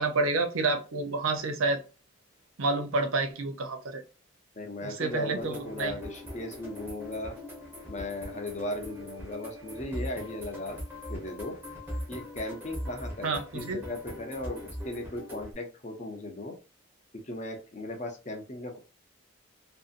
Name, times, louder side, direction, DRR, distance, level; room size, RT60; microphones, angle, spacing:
voice 1, 0.0-1.8 2.6-4.0 4.8-5.9 13.2-13.8, right 3 dB, 90° right, 7 dB, 0.6 m, -29 dB
voice 2, 4.6-7.4 7.9-10.8 11.1-11.6 12.1-16.6 17.1-18.8, left 1 dB, 35° left, 4 dB, 0.6 m, -37 dB
sound 1, 5.4-15.5, left 1 dB, 10° right, 0.9 m, -41 dB
2.6 x 2.6 x 2.4 m, 0.32 s
head